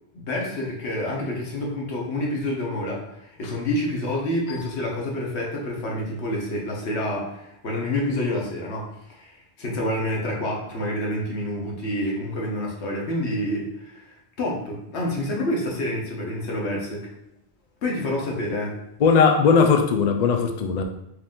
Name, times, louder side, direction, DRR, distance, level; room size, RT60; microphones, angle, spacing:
voice 1, 0.1-8.9 9.2-17.0 17.8-18.8, left 1 dB, 85° left, -1 dB, 1.3 m, -28 dB
voice 2, 19.0-20.8, left 5 dB, 55° left, 5 dB, 0.5 m, -18 dB
4.7 x 2.5 x 3.6 m, 0.84 s
omnidirectional pair, 1.1 m